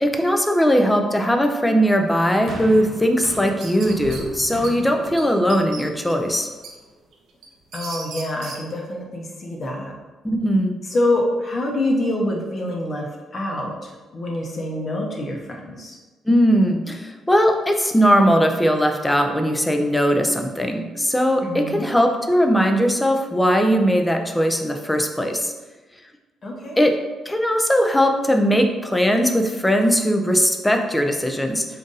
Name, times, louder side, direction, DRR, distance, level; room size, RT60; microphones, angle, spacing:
voice 1, 0.0-6.5 10.2-10.8 16.3-25.5 26.8-27.0 27.3-31.7, equal, 10° left, 4 dB, 0.5 m, -19 dB
sound 1, 2.5-6.8 7.6-7.7, right 1 dB, 55° right, 0.9 m, -37 dB
sound 2, 3.2-4.7 5.2-5.3 5.5-6.7 7.1-8.6, right 4 dB, 75° right, 0.5 m, -36 dB
voice 2, 7.7-9.9 10.9-13.1 13.3-16.0 21.4-21.9 26.4-26.8, left 1 dB, 45° left, 0 dB, 0.9 m, -26 dB
3.9 x 2.5 x 3.9 m, 1.2 s
cardioid pair, 90°, 0 cm